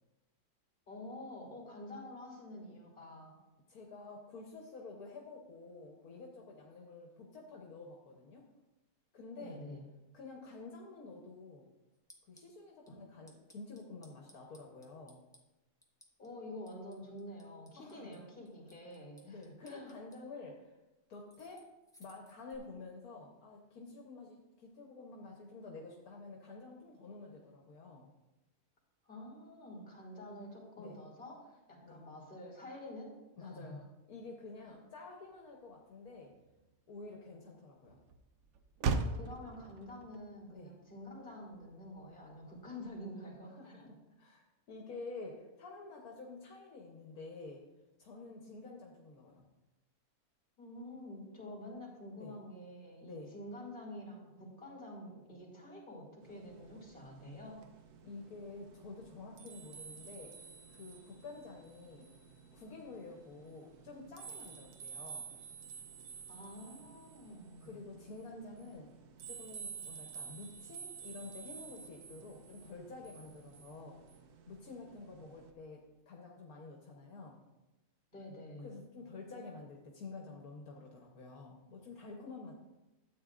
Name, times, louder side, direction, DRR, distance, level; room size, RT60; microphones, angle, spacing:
voice 1, 0.9-3.4 9.4-9.8 16.2-19.9 29.0-33.1 33.4-33.8 34.6-34.8 38.9-43.9 44.8-44.9 50.6-57.6 66.3-67.8 78.1-78.7, left 1 dB, 35° left, -3 dB, 3.0 m, -48 dB
voice 2, 3.7-8.4 9.1-9.6 10.1-11.6 12.3-15.2 17.8-18.2 19.2-20.8 21.1-21.7 22.0-28.1 30.8-31.0 31.8-32.0 33.4-36.3 36.9-38.0 40.5-40.8 43.5-47.6 48.0-49.4 52.2-52.3 53.0-53.3 58.0-60.4 60.7-62.1 62.5-65.4 67.6-68.9 69.3-74.0 74.5-77.4 78.6-82.6, left 3 dB, 75° left, 0 dB, 1.5 m, -49 dB
sound 1, 11.9-12.5 12.9-13.0 13.3-15.4 15.8-16.3 16.7-18.2 18.4-20.2 21.1-22.6, equal, 5° left, 0.9 m, -62 dB
Motor vehicle (road), 34.7-43.4, right 4 dB, 65° right, 0.8 m, -42 dB
sound 2, 56.2-75.5, right 7 dB, 90° right, 1.3 m, -52 dB
13.0 x 8.4 x 2.5 m, 1.0 s
omnidirectional pair, 1.6 m